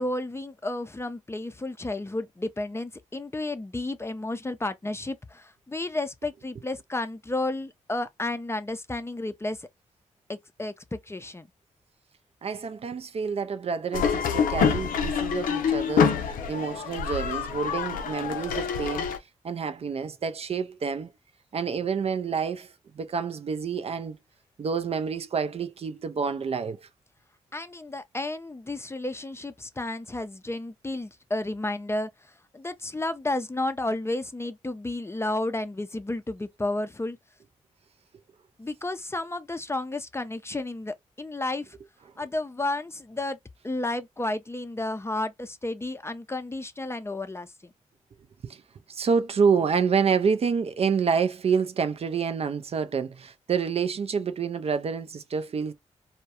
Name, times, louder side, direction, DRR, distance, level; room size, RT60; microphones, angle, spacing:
voice 1, 0.0-9.7 10.3-11.5 27.5-32.1 32.5-37.2 38.6-41.8 42.2-43.4 43.6-47.7, left 2 dB, 20° left, 0.4 m, -32 dB
voice 2, 12.4-19.1 19.4-21.1 21.5-24.2 24.6-26.9 48.4-48.6 48.9-55.7, right 6 dB, 45° right, 0.4 m, -28 dB
sound 1, 13.9-19.2, left 7 dB, 80° left, 0.4 m, -26 dB
2.2 x 2.1 x 2.8 m
supercardioid pair, 40°, 14 cm